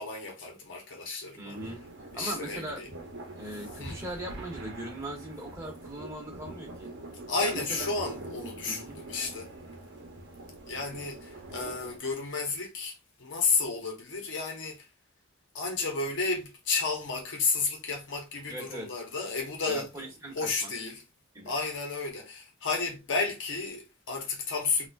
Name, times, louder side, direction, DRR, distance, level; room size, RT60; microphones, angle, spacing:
voice 1, 0.0-1.6 2.1-2.9 3.8-4.0 7.3-9.5 10.7-12.9 13.2-14.9 15.5-19.9 20.4-21.0 21.5-24.9, left 4 dB, 60° left, 0.9 m, -32 dB
voice 2, 1.4-1.8 2.1-2.8 3.3-6.9 7.4-7.9 8.7-9.1 18.5-18.9 19.6-20.7 21.3-21.5, right 1 dB, 15° right, 1.3 m, -40 dB
sound 1, 1.5-12.0, right 2 dB, 55° right, 0.9 m, -44 dB
4.0 x 2.4 x 2.5 m
head